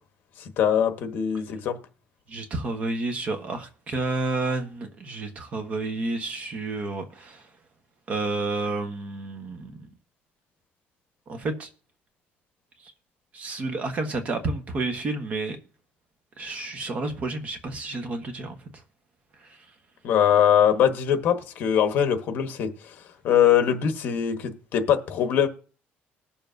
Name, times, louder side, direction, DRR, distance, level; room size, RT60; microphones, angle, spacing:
voice 1, 0.6-1.8 20.0-22.7 23.2-25.5, left 9 dB, 50° left, 1.2 m, -22 dB
voice 2, 2.3-7.4 8.1-9.9 11.3-11.7 13.3-15.6 16.4-18.6, right 3 dB, 35° right, 1.2 m, -30 dB
20.5 x 6.9 x 2.6 m
cardioid pair, 175°, 4 cm